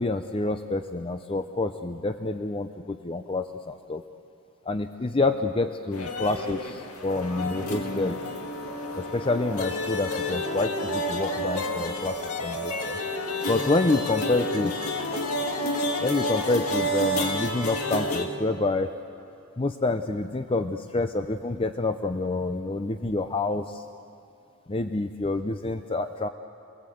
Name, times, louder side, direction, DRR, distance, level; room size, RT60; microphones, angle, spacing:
voice 1, 0.0-4.0 4.7-8.1 8.9-13.0 13.5-14.7 16.0-18.9 19.6-23.8 24.7-26.3, left 2 dB, 25° left, 8 dB, 0.5 m, -28 dB
sound 1, 5.9-18.3, left 1 dB, 80° left, 2.0 m, -30 dB
28.0 x 19.0 x 7.9 m, 2.5 s
head